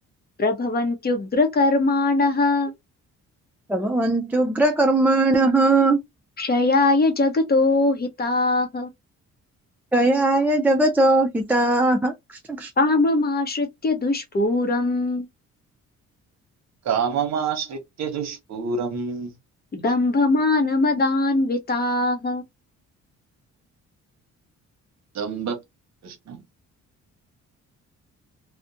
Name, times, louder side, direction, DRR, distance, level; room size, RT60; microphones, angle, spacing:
voice 1, 0.4-2.7 6.4-8.9 12.8-15.3 19.7-22.4, left 2 dB, 30° left, 0.7 m, -21 dB
voice 2, 3.7-6.0 9.9-12.1 12.5-12.7, right 2 dB, 5° right, 0.3 m, -19 dB
voice 3, 16.8-19.3 25.1-25.6 26.0-26.4, right 6 dB, 60° right, 0.9 m, -27 dB
2.4 x 2.1 x 2.6 m
cardioid pair, 90°, 30 cm